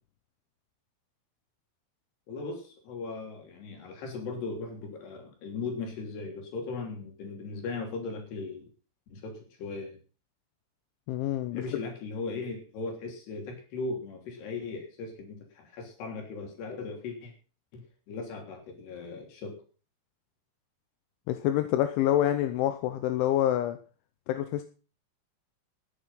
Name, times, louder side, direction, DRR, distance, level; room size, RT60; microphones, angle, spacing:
voice 1, 2.3-8.6 9.1-10.0 11.5-17.3 17.7-19.6, left 3 dB, 55° left, 5.0 m, -38 dB
voice 2, 11.1-11.6 21.3-23.8 24.3-24.6, left 12 dB, 80° left, 3.0 m, -27 dB
13.5 x 10.0 x 5.7 m
omnidirectional pair, 6.0 m